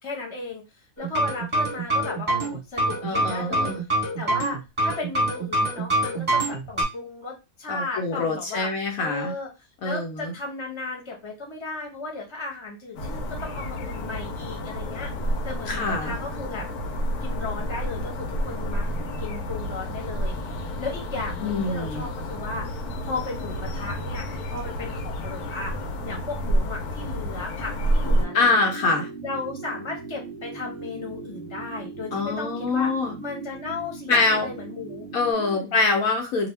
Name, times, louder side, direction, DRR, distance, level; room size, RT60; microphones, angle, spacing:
voice 1, 0.0-0.6 1.0-3.8 4.2-9.5 9.8-15.1 15.4-16.6 17.2-22.7 23.0-25.7 26.0-28.7 29.2-32.9 33.2-35.1 35.3-35.8, left 3 dB, 20° left, -2 dB, 0.9 m, -35 dB
sound 1, 1.0-6.8, right 1 dB, 20° right, 1.1 m, -25 dB
voice 2, 3.0-3.7 7.7-9.3 9.8-10.3 15.7-16.2 21.4-22.1 28.3-29.1 32.1-33.1 34.1-34.4 35.1-36.5, left 3 dB, 70° left, 1 dB, 1.1 m, -24 dB
sound 2, 13.0-28.3, equal, 90° left, 1.2 m, -29 dB
sound 3, 28.0-35.3, right 5 dB, 60° right, 0.9 m, -39 dB
2.7 x 2.2 x 3.2 m, 0.25 s
omnidirectional pair, 1.6 m